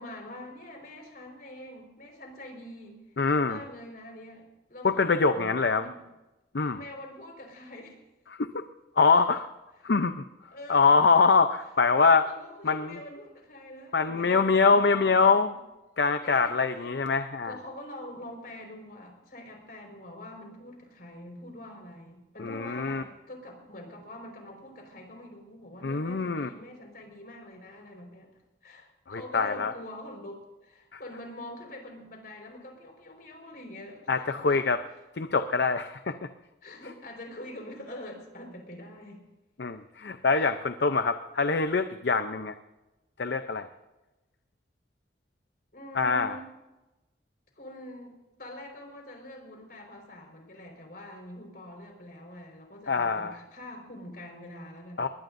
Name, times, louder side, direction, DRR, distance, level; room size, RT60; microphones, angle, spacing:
voice 1, 0.0-3.0 3.4-6.0 6.7-8.0 9.1-9.2 10.5-10.9 12.2-15.6 16.2-16.9 17.4-28.3 28.6-34.7 36.6-39.2 40.3-40.5 45.7-46.5 47.5-55.1, left 1 dB, 55° left, 2 dB, 4.8 m, -45 dB
voice 2, 3.2-3.6 4.8-5.9 6.5-6.8 8.4-8.5 9.0-9.5 9.8-10.1 10.7-12.3 12.6-13.0 13.9-15.5 16.0-17.6 22.4-23.0 25.8-26.5 29.1-29.7 34.1-34.8 35.2-36.2 39.6-42.5 43.2-43.7 46.0-46.4 52.9-53.4 55.0-55.1, left 4 dB, 70° left, 9 dB, 0.7 m, -24 dB
21.5 x 20.0 x 2.7 m, 1.0 s
head